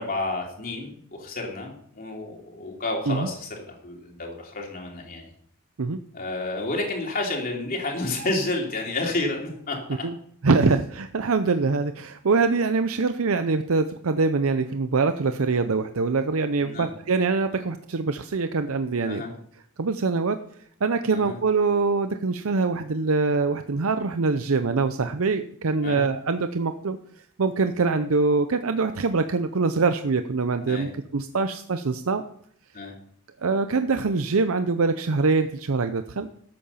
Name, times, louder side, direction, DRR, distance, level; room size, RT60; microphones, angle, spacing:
voice 1, 0.0-5.3 6.1-10.1 16.6-16.9 19.1-19.3 21.1-21.4 25.8-26.1 30.6-30.9 32.7-32.9, left 2 dB, 40° left, 0 dB, 3.3 m, -30 dB
voice 2, 10.4-19.2 19.8-20.4 20.8-27.0 27.4-32.2 33.4-36.3, right 4 dB, 70° right, 9 dB, 0.6 m, -24 dB
13.0 x 8.8 x 5.7 m, 0.64 s
head